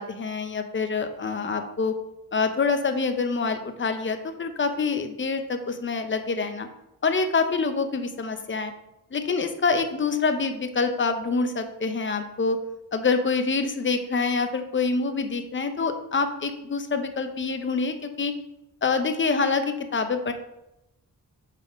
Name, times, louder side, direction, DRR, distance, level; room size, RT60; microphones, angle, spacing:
voice 1, 0.0-2.0 2.3-6.7 7.0-8.7 9.1-12.6 12.9-18.3 18.8-20.3, left 4 dB, 35° left, 7 dB, 0.6 m, -26 dB
5.5 x 4.0 x 5.1 m, 0.89 s
wide cardioid pair, 120°, 35 cm